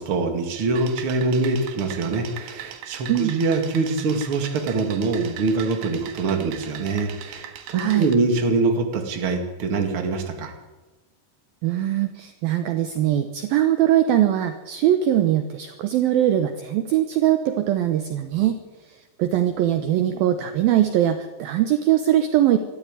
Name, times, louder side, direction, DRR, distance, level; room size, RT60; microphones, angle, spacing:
voice 1, 0.0-10.5, right 3 dB, 40° right, 4 dB, 2.0 m, -24 dB
sound 1, 0.8-8.1, right 9 dB, 60° right, 3.0 m, -40 dB
voice 2, 7.7-8.1 11.6-18.6 19.2-22.6, right 12 dB, 80° right, 8 dB, 2.1 m, -21 dB
22.0 x 13.5 x 9.0 m, 1.2 s
omnidirectional pair, 5.5 m